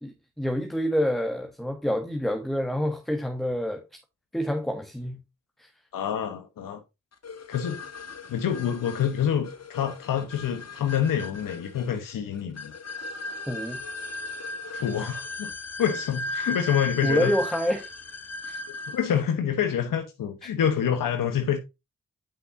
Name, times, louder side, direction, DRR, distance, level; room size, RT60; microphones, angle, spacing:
voice 1, 0.0-3.8 4.3-5.2 5.6-5.7 13.5-13.8 17.0-17.9 18.4-18.6, equal, ahead, 1.4 m, -27 dB
voice 2, 5.9-6.8 7.5-7.8 8.3-12.7 14.7-15.5 15.8-17.3 18.9-21.6, left 8 dB, 85° left, 1.1 m, -27 dB
sound 1, 7.2-19.2, left 2 dB, 50° left, 1.3 m, -36 dB
8.9 x 5.6 x 2.7 m
cardioid pair, 50°, 32 cm